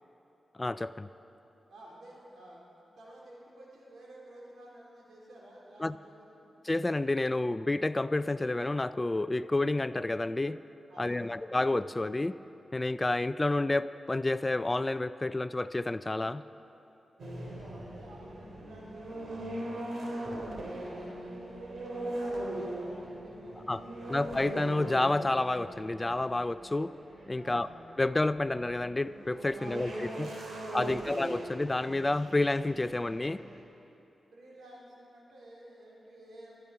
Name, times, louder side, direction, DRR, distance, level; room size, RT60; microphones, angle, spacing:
voice 1, 0.5-1.1 5.8-6.0 6.6-10.6 11.0-12.4 12.7-16.4 23.7-23.8 24.1-26.9 27.3-27.7 28.0-30.3 30.7-33.4, left 2 dB, 25° left, 14 dB, 0.4 m, -29 dB
voice 2, 1.7-6.4 10.9-11.4 17.4-24.2 27.4-27.7 29.5-31.1 34.3-36.6, right 1 dB, 85° right, -4 dB, 3.8 m, -53 dB
sound 1, 17.2-33.6, right 1 dB, 70° right, 2.8 m, -40 dB
14.0 x 12.5 x 5.8 m, 3.0 s
cardioid pair, 65°, 0 cm